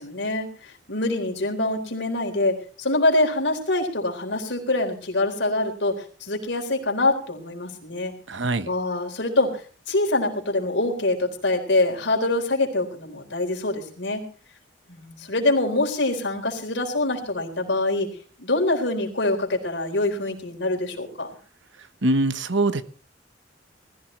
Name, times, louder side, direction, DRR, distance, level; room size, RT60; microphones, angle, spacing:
voice 1, 0.0-8.1 8.7-9.6 9.9-14.3 14.9-18.1 18.4-21.3, left 2 dB, 75° left, 3 dB, 4.0 m, -25 dB
voice 2, 8.3-8.7 21.8-22.8, right 2 dB, 80° right, 11 dB, 1.1 m, -23 dB
20.5 x 14.5 x 3.2 m, 0.40 s
head